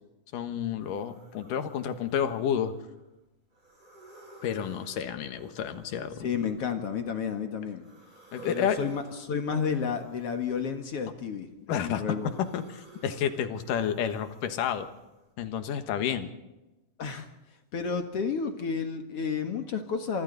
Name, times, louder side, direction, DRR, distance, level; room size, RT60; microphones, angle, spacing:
voice 1, 0.3-2.7 4.4-6.2 8.3-8.8 11.7-14.9 15.4-16.3, left 8 dB, 80° left, 8 dB, 2.9 m, -30 dB
sound 1, 0.8-3.0 3.5-7.2 7.8-10.9 11.4-15.2, right 1 dB, 15° right, 7.4 m, -54 dB
voice 2, 6.2-7.8 8.4-11.5 11.8-12.4 17.0-17.3 17.7-20.2, left 6 dB, 50° left, 5 dB, 2.2 m, -31 dB
26.5 x 25.0 x 4.0 m, 1.0 s
omnidirectional pair, 3.8 m